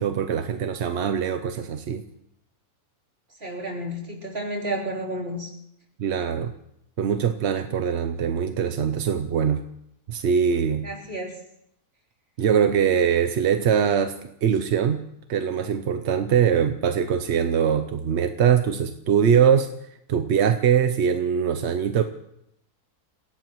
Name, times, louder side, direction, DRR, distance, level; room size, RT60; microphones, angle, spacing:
voice 1, 0.0-2.0 6.0-6.5 7.0-9.7 10.1-10.9 12.4-14.2 14.4-15.0 15.3-19.7 20.1-22.0, right 7 dB, 55° right, 8 dB, 0.8 m, -22 dB
voice 2, 3.4-5.5 10.8-11.4, right 1 dB, 40° right, -4 dB, 3.7 m, -31 dB
27.0 x 16.5 x 3.0 m, 0.78 s
omnidirectional pair, 1.6 m